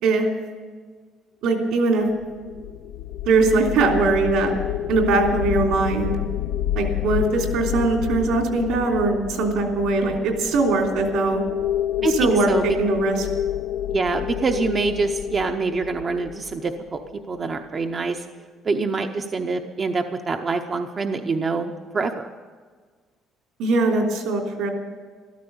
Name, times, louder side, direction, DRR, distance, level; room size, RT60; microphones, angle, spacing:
voice 1, 1.4-2.1 3.2-4.6 4.9-6.2 6.7-11.4 12.1-13.3 23.6-24.7, right 3 dB, 75° right, 2 dB, 3.2 m, -21 dB
sound 1, 2.2-17.4, left 11 dB, 80° left, 0.4 m, -29 dB
voice 2, 12.0-12.6 13.9-17.0 17.3-18.2 18.6-22.3, right 4 dB, 25° right, 5 dB, 0.6 m, -25 dB
13.5 x 13.5 x 7.0 m, 1.5 s
cardioid pair, 170°, 0 cm